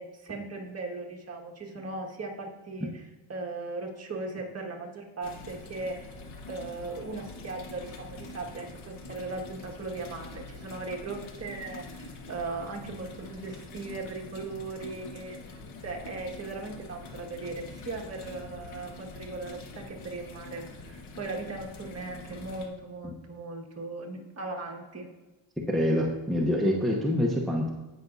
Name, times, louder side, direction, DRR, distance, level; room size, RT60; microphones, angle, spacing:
voice 1, 0.0-6.1 6.5-15.4 15.8-25.1, right 3 dB, 35° right, 0 dB, 1.8 m, -38 dB
sound 1, 5.2-22.7, left 3 dB, 80° left, 1.3 m, -45 dB
voice 2, 25.7-27.7, left 1 dB, ahead, -2 dB, 0.9 m, -26 dB
16.5 x 6.1 x 2.7 m, 1.1 s
cardioid pair, 110°, 46 cm